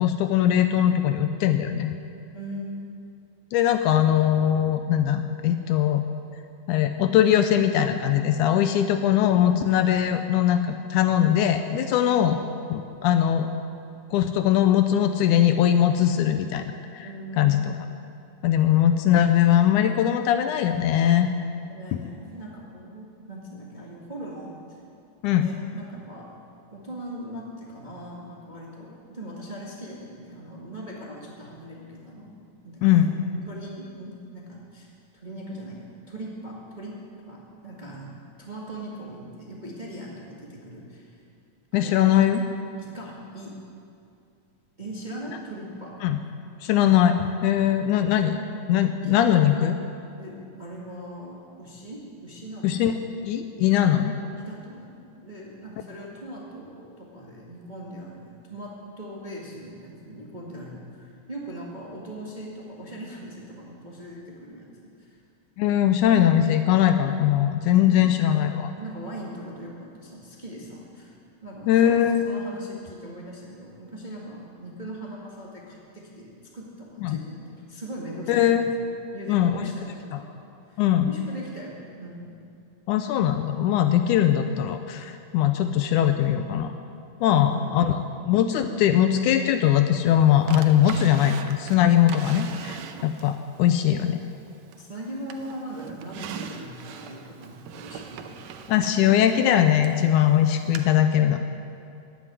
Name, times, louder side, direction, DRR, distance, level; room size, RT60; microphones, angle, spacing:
voice 1, 0.0-1.9 3.5-6.0 6.7-12.4 12.7-13.5 14.1-17.1 17.4-17.7 18.4-21.3 25.2-25.5 32.8-33.2 41.7-42.4 46.0-46.2 46.6-47.2 47.4-48.4 48.7-49.8 52.6-52.9 53.3-54.1 65.6-68.7 71.7-72.3 77.0-77.2 78.3-78.7 79.3-79.7 80.1-80.2 80.8-81.1 82.9-86.7 87.2-87.9 88.3-94.2 98.7-101.4, left 10 dB, 80° left, 8 dB, 2.0 m, -21 dB
voice 2, 2.3-3.1 11.9-12.2 17.0-17.7 21.7-24.8 25.3-26.3 26.7-32.4 32.6-33.1 33.5-41.2 41.7-42.0 42.8-43.6 44.8-46.0 49.0-49.2 50.2-52.8 54.4-65.2 67.8-68.0 68.8-71.1 71.4-78.6 79.1-80.3 80.7-82.4 87.3-88.1 94.7-98.5, right 1 dB, 20° right, -4 dB, 1.1 m, -40 dB
Drawer open or close, 90.5-93.4 93.9-94.9 95.3-100.0 100.8-100.9, right 8 dB, 85° right, 2.3 m, -39 dB
15.0 x 7.1 x 9.9 m, 2.5 s
omnidirectional pair, 3.8 m